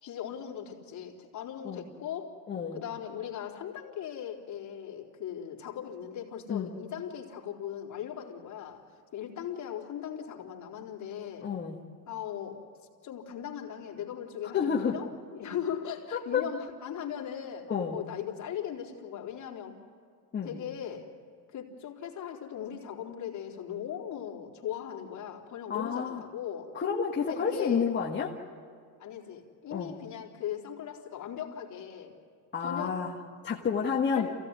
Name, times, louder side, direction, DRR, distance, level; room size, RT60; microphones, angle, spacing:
voice 1, 0.0-2.3 2.7-8.8 9.1-11.5 12.1-12.7 13.0-19.8 20.4-21.1 21.5-26.8 27.2-27.9 29.0-32.1 32.6-33.1 34.1-34.3, left 9 dB, 40° left, -1 dB, 3.8 m, -39 dB
voice 2, 2.5-2.8 6.5-6.7 11.4-11.8 14.5-15.0 16.1-16.4 17.7-18.0 20.3-20.6 25.7-26.2 26.7-28.3 29.7-29.9 32.5-33.2 33.4-34.3, left 6 dB, 25° left, -3 dB, 1.6 m, -30 dB
28.0 x 17.0 x 9.6 m, 2.2 s
cardioid pair, 145°, 45 cm